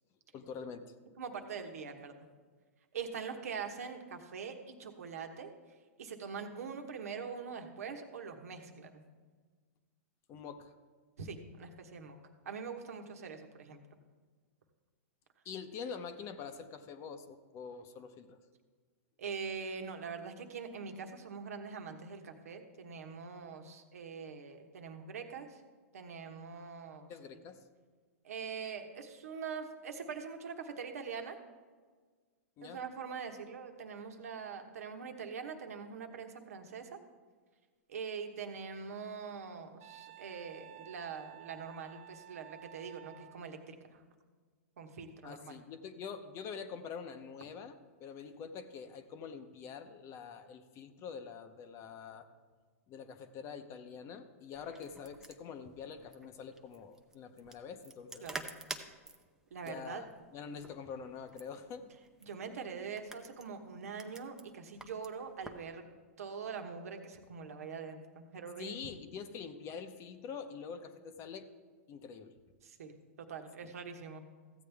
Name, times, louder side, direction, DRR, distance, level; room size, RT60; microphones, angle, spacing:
voice 1, 0.3-0.9 10.3-10.7 15.4-18.4 27.1-27.7 32.6-32.8 45.2-52.3 52.9-58.3 59.6-60.1 60.3-61.9 68.6-71.5 71.9-72.3 73.6-73.7, left 6 dB, 35° left, 9 dB, 0.8 m, -45 dB
voice 2, 1.2-2.1 2.9-5.5 6.0-9.0 11.2-12.2 12.4-13.8 19.2-25.6 25.9-27.1 28.2-31.4 32.6-37.0 37.9-44.0 44.8-45.6 58.2-58.4 59.5-60.0 62.2-65.8 66.2-68.7 72.6-74.2, right 6 dB, 80° right, 5 dB, 1.2 m, -43 dB
Wind instrument woodwind instrument, 39.8-43.4, right 15 dB, 50° right, 0.4 m, -53 dB
sound 1, 54.5-65.7, right 2 dB, 5° right, 0.7 m, -50 dB
14.5 x 8.2 x 3.5 m, 1.5 s
hypercardioid pair, 120°, 8 cm